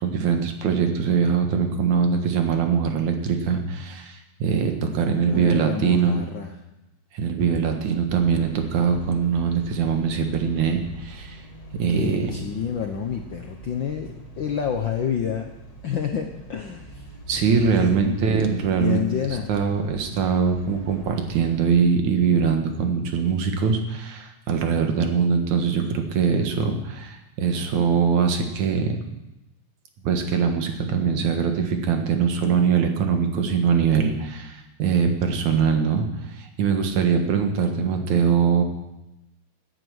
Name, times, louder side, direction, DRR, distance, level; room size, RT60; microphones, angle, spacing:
voice 1, 0.0-6.2 7.1-11.4 11.8-12.3 17.3-19.0 19.5-29.0 30.0-36.1 36.3-38.6, right 6 dB, 80° right, 4 dB, 2.9 m, -22 dB
voice 2, 5.3-6.6 11.9-15.5 15.8-17.2 17.6-18.2 18.7-19.5, left 8 dB, 70° left, 4 dB, 1.1 m, -29 dB
sound 1, 8.1-21.8, right 2 dB, 35° left, 0.5 m, -43 dB
17.0 x 9.0 x 6.3 m, 0.93 s
omnidirectional pair, 3.3 m